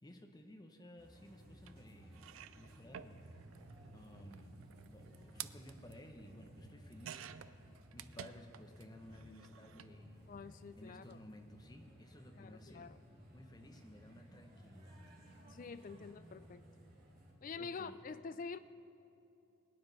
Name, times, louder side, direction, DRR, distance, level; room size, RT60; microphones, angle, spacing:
voice 1, 0.0-2.3 2.5-3.2 3.9-7.4 7.9-10.3 10.8-12.9 13.3-15.1 17.6-18.0, left 1 dB, 20° left, 4 dB, 0.8 m, -56 dB
sound 1, 1.0-17.3, equal, 45° right, 3.0 m, -58 dB
sound 2, 1.7-1.8 2.1-8.8 9.1-9.9 10.9-11.1 11.4-11.5, right 9 dB, 70° right, 0.4 m, -53 dB
voice 2, 10.3-11.2 12.3-13.0 15.5-16.6 17.4-18.6, left 5 dB, 40° left, 13 dB, 0.3 m, -47 dB
21.0 x 9.6 x 4.0 m, 2.8 s
head